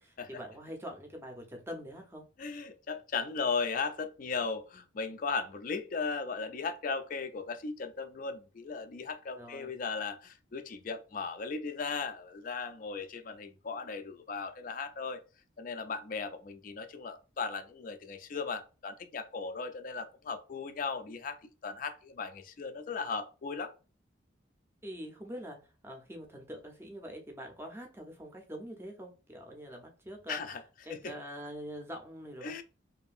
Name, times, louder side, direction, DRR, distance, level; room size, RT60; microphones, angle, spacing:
voice 1, 0.0-2.3 9.3-9.7 24.8-30.4 30.8-32.6, equal, 10° right, 0.6 m, -44 dB
voice 2, 2.4-15.2 15.6-23.7 30.3-30.6 30.9-31.1 32.4-32.6, left 4 dB, 45° left, 0.3 m, -37 dB
2.6 x 2.6 x 2.4 m
head